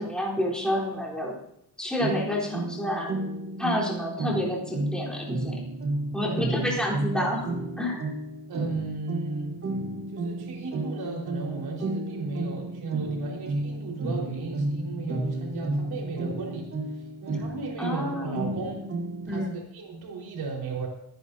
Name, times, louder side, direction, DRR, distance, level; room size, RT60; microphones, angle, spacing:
voice 1, 0.0-1.4 1.8-3.1 3.6-5.6 6.1-7.5 7.8-8.1 17.8-18.5 19.3-19.6, left 1 dB, ahead, -5 dB, 4.0 m, -29 dB
sound 1, 2.0-19.4, right 2 dB, 35° right, 1.4 m, -32 dB
voice 2, 6.2-6.8 8.5-9.6 10.1-16.7 17.2-18.9 19.2-20.9, right 3 dB, 80° right, -1 dB, 4.7 m, -35 dB
22.5 x 10.5 x 2.8 m, 0.75 s
cardioid pair, 145°, 38 cm